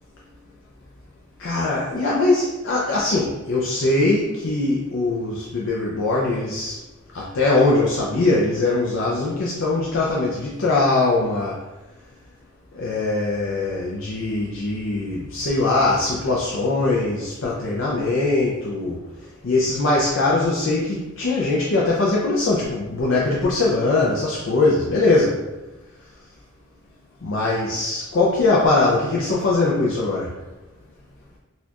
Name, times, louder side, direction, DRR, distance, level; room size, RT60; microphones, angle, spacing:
voice 1, 1.4-6.8 7.1-11.6 12.7-19.0 19.4-25.4 27.2-30.4, left 2 dB, 60° left, -4 dB, 0.5 m, -21 dB
4.1 x 2.4 x 2.8 m, 1.1 s
head